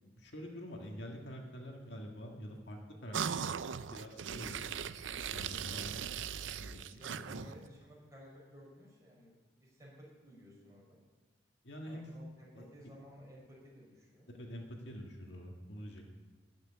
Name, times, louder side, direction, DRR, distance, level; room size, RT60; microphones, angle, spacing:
voice 1, 0.0-4.8 5.3-5.9 6.6-7.5 11.6-12.1 12.5-12.6 14.4-16.0, equal, 70° left, 1 dB, 1.8 m, -47 dB
sound 1, 3.1-7.7, right 7 dB, 90° right, 0.5 m, -39 dB
voice 2, 6.6-11.0 11.9-14.3 14.8-14.9, equal, 15° right, -4 dB, 4.8 m, -56 dB
13.0 x 6.6 x 9.8 m, 1.4 s
head